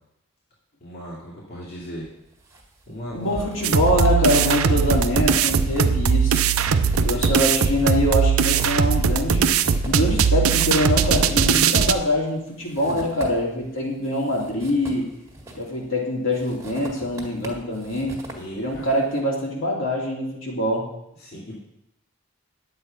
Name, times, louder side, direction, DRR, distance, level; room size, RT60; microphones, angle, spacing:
voice 1, 0.8-2.1 2.9-3.5 4.3-4.6 6.8-7.2 18.3-18.8 21.2-21.6, equal, 50° left, -5 dB, 2.4 m, -37 dB
sound 1, 2.0-2.6 2.9-13.7 14.0-15.9 16.3-19.0, right 1 dB, 15° right, 1.8 m, -39 dB
voice 2, 3.1-6.4 7.0-9.6 9.8-15.1 15.6-18.2 18.5-20.9, left 1 dB, 65° left, -3 dB, 2.9 m, -24 dB
sound 2, 3.6-11.9, right 6 dB, 85° right, 0.6 m, -20 dB
10.5 x 7.9 x 5.4 m, 0.82 s
head